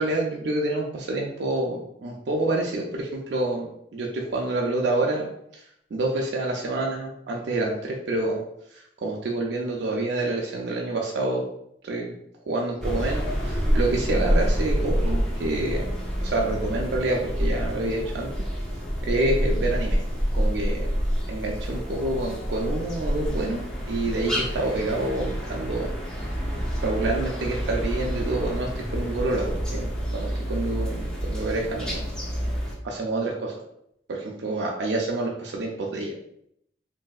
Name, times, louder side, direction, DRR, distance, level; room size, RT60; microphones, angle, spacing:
voice 1, 0.0-5.3 5.5-8.4 8.7-11.4 11.8-12.1 12.5-15.9 16.2-18.3 19.0-20.0 20.3-20.9 21.3-25.9 26.2-32.0 32.4-33.5 34.1-36.1, right 2 dB, 75° right, -1 dB, 0.4 m, -28 dB
sound 1, 12.8-32.8, equal, 5° left, 0.5 m, -28 dB
3.1 x 2.6 x 2.3 m, 0.75 s
head